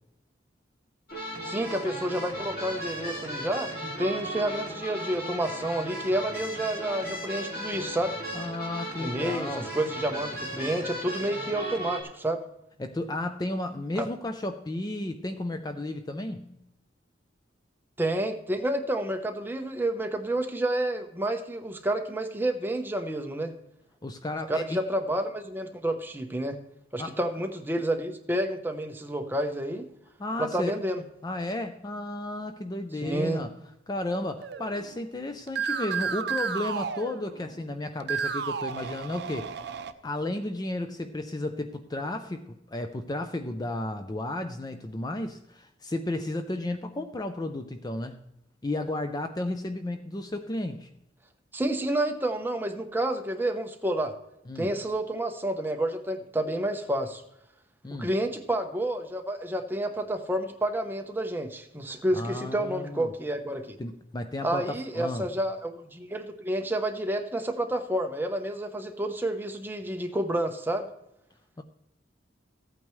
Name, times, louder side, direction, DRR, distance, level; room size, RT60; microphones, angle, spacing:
sound 1, 1.1-12.0, equal, 55° left, 2.8 m, -36 dB
voice 1, 1.4-8.1 9.0-12.4 14.0-14.1 18.0-23.5 24.5-26.6 26.9-29.9 30.4-31.0 33.0-33.4 51.5-54.1 54.6-57.2 58.0-63.8 64.4-70.9, right 1 dB, 10° right, 5 dB, 0.8 m, -29 dB
voice 2, 8.3-9.7 12.8-16.6 24.0-24.8 27.0-27.2 30.2-30.8 31.2-33.5 33.9-39.6 40.0-48.2 48.6-50.9 54.5-54.7 57.8-58.1 62.1-63.1 63.8-65.3 71.6-71.7, left 1 dB, 20° left, 8 dB, 0.5 m, -33 dB
sound 2, 34.4-35.1 35.5-37.6 38.0-39.9, right 6 dB, 60° right, 0.6 m, -32 dB
15.0 x 8.7 x 3.2 m, 0.84 s
head